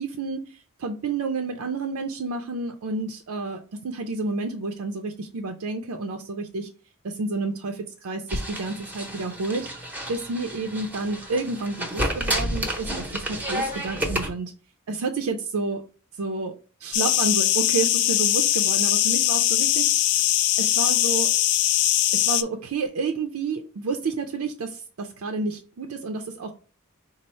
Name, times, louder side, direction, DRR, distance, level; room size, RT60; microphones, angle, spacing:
voice 1, 0.0-6.7 7.0-14.5 14.9-15.8 16.2-16.5 16.8-19.9 20.6-21.3 22.1-26.5, right 3 dB, 75° right, 4 dB, 0.4 m, -30 dB
sound 1, 8.3-14.3, equal, 10° right, 0.7 m, -30 dB
sound 2, 16.9-22.4, left 13 dB, 80° left, 0.3 m, -21 dB
5.1 x 2.0 x 4.2 m, 0.39 s
head